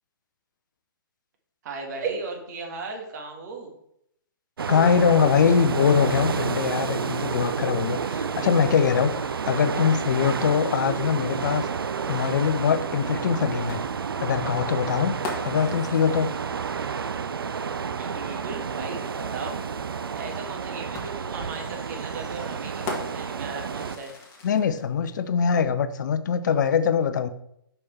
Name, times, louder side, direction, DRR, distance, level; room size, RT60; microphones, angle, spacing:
voice 1, 1.6-3.7 17.9-19.6 20.1-24.1, right 4 dB, 45° right, 3 dB, 1.6 m, -36 dB
sound 1, 4.6-24.0, right 6 dB, 70° right, 0.5 m, -30 dB
voice 2, 4.7-11.7 12.1-13.8 14.2-15.2 15.4-16.3 24.4-27.3, left 7 dB, 50° left, 11 dB, 0.6 m, -23 dB
sound 2, 13.7-17.3 18.8-18.9 20.9-24.8, left 3 dB, 20° left, 1.5 m, -40 dB
6.2 x 5.5 x 4.4 m, 0.74 s
figure-of-eight pair, 125°, 12 cm